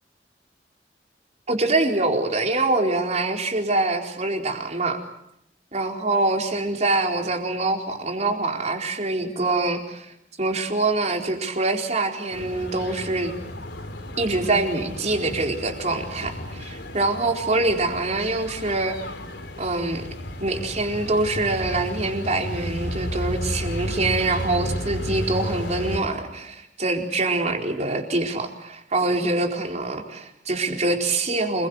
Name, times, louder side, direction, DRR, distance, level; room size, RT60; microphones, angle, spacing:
voice 1, 1.5-5.0 5.7-13.3 14.2-19.0 19.6-20.1 20.4-31.7, right 2 dB, 40° right, 2 dB, 4.4 m, -24 dB
sound 1, 12.3-26.0, left 1 dB, 70° left, 4.0 m, -33 dB
28.5 x 22.5 x 8.1 m, 0.77 s
head